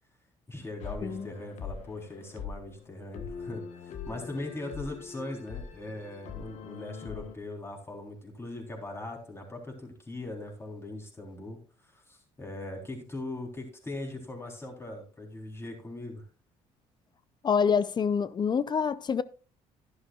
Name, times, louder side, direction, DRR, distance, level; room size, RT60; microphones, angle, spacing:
voice 1, 0.5-16.2, left 2 dB, 20° left, 3.7 m, -40 dB
sound 1, 0.8-7.3, left 6 dB, 65° left, 1.3 m, -42 dB
voice 2, 17.4-19.2, left 6 dB, 35° left, 0.5 m, -26 dB
11.5 x 11.0 x 2.4 m
cardioid pair, 95°, 13 cm